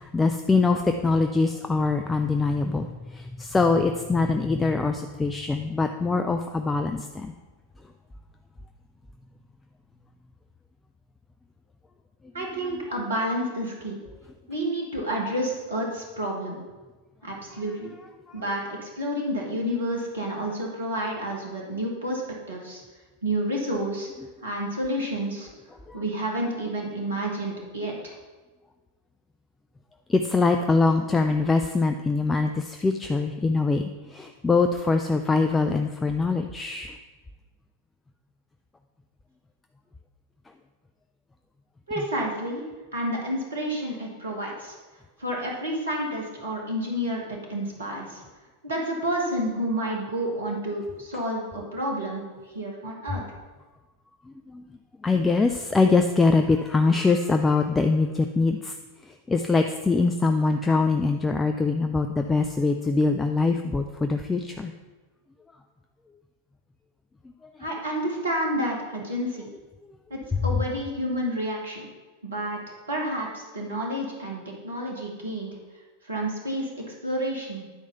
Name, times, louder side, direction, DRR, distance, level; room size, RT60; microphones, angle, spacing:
voice 1, 0.0-7.3 25.9-26.0 30.1-37.0 42.0-42.1 54.5-54.7 55.0-58.8 59.1-64.7, left 3 dB, 10° left, 5 dB, 0.4 m, -23 dB
voice 2, 12.3-14.0 14.5-16.6 17.2-17.9 18.3-22.2 22.5-22.8 23.2-24.1 24.4-25.5 25.9-28.1 41.9-42.6 42.9-44.7 45.2-48.2 48.6-53.2 67.6-69.5 70.1-71.9 72.2-72.6 72.9-75.6 76.0-77.6, right 1 dB, 70° right, -1 dB, 1.6 m, -30 dB
9.8 x 4.6 x 5.6 m, 1.3 s
figure-of-eight pair, 90°, 0 cm